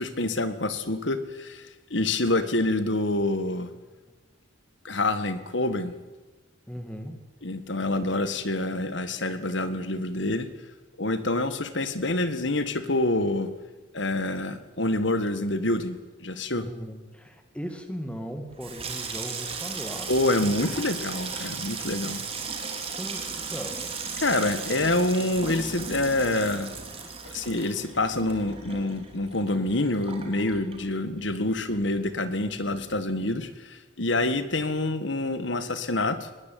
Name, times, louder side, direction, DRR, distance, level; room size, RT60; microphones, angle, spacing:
voice 1, 0.0-3.7 4.8-5.9 7.4-10.5 11.0-13.5 13.9-16.7 20.1-22.2 24.2-26.7 27.3-36.3, left 2 dB, 70° left, 12 dB, 1.8 m, -27 dB
voice 2, 6.7-7.3 16.6-20.8 22.8-24.0, equal, 5° left, 6 dB, 2.3 m, -38 dB
Water tap faucet / Sink (filling or washing), 18.4-31.3 31.6-32.3 32.5-32.8, right 5 dB, 30° right, 3.4 m, -36 dB
21.0 x 17.5 x 9.4 m, 1.2 s
head